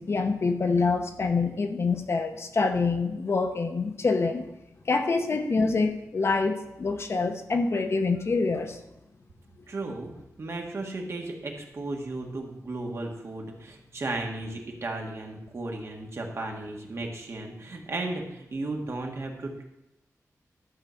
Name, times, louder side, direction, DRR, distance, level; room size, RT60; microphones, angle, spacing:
voice 1, 0.0-4.5 4.9-8.8 16.4-16.5, left 4 dB, 50° left, 6 dB, 1.0 m, -26 dB
voice 2, 9.7-10.1 10.4-19.6, right 2 dB, 50° right, 1 dB, 1.7 m, -35 dB
12.0 x 4.9 x 7.0 m, 0.91 s
wide cardioid pair, 140°, 6 cm